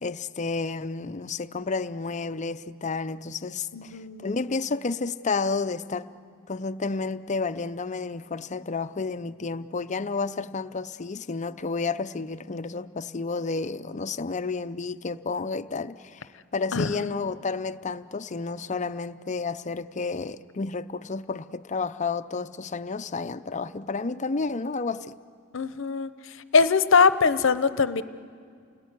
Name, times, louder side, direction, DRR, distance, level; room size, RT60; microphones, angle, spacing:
voice 1, 0.0-6.1 6.5-25.1, left 4 dB, 35° left, 0.6 m, -31 dB
voice 2, 3.7-4.3 16.7-17.1 25.5-26.1 26.5-28.0, left 5 dB, 65° left, 0.8 m, -22 dB
29.0 x 19.0 x 9.5 m
head